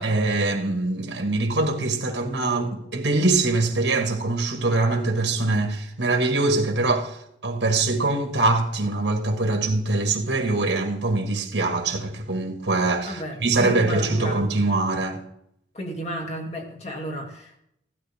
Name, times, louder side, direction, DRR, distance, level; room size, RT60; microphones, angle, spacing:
voice 1, 0.0-15.2, right 2 dB, 80° right, 1.8 m, -23 dB
voice 2, 13.0-14.4 15.7-17.6, equal, 35° left, 2.6 m, -33 dB
16.5 x 12.5 x 3.6 m
head